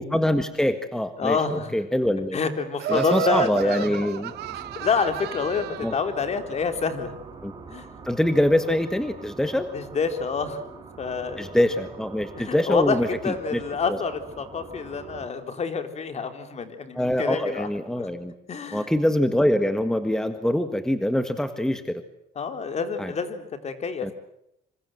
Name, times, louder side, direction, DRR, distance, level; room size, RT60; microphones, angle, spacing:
voice 1, 0.0-2.4 2.9-4.3 5.8-5.9 7.4-7.5 8.1-9.7 11.4-13.6 13.9-14.0 17.0-18.3 18.7-22.0 23.0-23.1 24.0-24.1, left 1 dB, 5° left, 9 dB, 1.6 m, -24 dB
voice 2, 1.2-1.7 2.3-3.9 4.8-7.1 7.7-7.9 9.7-10.6 11.0-11.4 12.4-17.7 18.0-18.1 18.5-18.9 22.4-24.1, left 5 dB, 40° left, 8 dB, 3.6 m, -27 dB
Laughter, 2.8-6.0, right 13 dB, 75° right, 1.2 m, -31 dB
sound 1, 4.3-15.3, right 4 dB, 25° right, 5.9 m, -44 dB
26.0 x 26.0 x 7.8 m, 0.82 s
cardioid pair, 110°, 17 cm